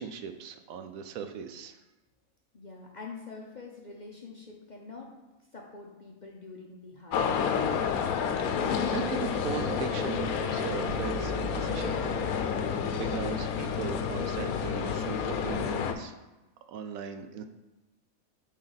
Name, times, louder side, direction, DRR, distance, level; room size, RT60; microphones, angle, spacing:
voice 1, 0.0-1.8 8.4-12.4 13.0-16.2 16.7-17.5, right 7 dB, 75° right, 8 dB, 1.0 m, -38 dB
voice 2, 2.5-5.1 5.5-7.8 8.6-8.8, left 4 dB, 40° left, -1 dB, 0.7 m, -46 dB
sound 1, 7.1-15.9, left 7 dB, 80° left, 1.1 m, -30 dB
sound 2, 9.2-15.5, left 2 dB, 60° right, 1.1 m, -39 dB
8.2 x 3.4 x 4.0 m, 1.1 s
omnidirectional pair, 1.5 m